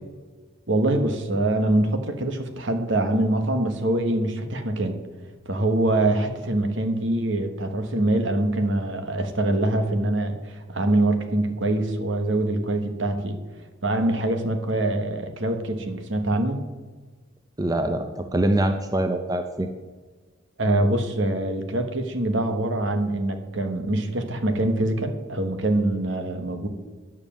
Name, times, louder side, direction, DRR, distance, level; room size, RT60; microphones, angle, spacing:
voice 1, 0.7-5.0 5.4-13.4 13.8-16.6 20.6-26.7, right 1 dB, 65° right, 7 dB, 1.3 m, -24 dB
voice 2, 17.6-19.7, right 1 dB, 20° right, 7 dB, 0.6 m, -24 dB
9.7 x 7.2 x 7.3 m, 1.4 s
head